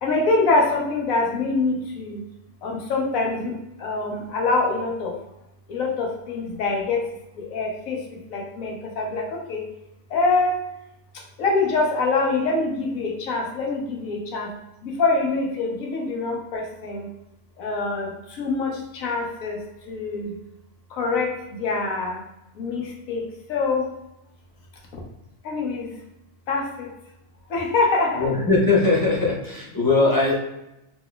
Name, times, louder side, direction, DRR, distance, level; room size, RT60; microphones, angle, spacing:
voice 1, 0.0-2.2 2.6-3.5 3.8-5.1 5.7-7.0 7.4-8.0 8.3-9.7 10.1-10.6 11.4-14.5 14.8-17.1 17.6-19.6 19.9-20.4 20.9-22.2 22.6-23.9 25.4-25.9 26.5-26.9 27.5-28.3, left 3 dB, 85° left, 0 dB, 1.2 m, -24 dB
voice 2, 28.1-30.4, left 3 dB, 20° left, -5 dB, 0.8 m, -20 dB
4.2 x 2.8 x 2.3 m, 0.87 s
omnidirectional pair, 1.4 m